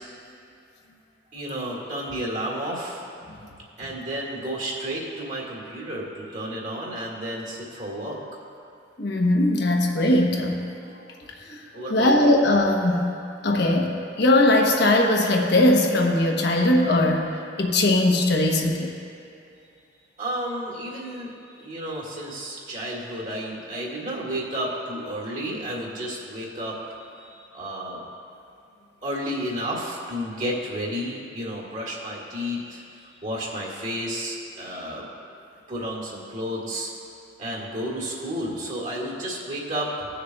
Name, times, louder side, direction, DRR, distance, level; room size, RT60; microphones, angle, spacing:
voice 1, 1.3-3.0 3.8-8.2 11.7-12.4 20.2-28.0 29.0-35.1 35.7-36.9 37.4-40.1, equal, 45° right, -3 dB, 1.9 m, -32 dB
voice 2, 9.0-10.7 11.5-11.6 11.9-13.1 13.4-17.3 17.6-18.9, left 1 dB, 60° left, 0 dB, 1.0 m, -20 dB
19.5 x 6.6 x 2.3 m, 2.5 s
head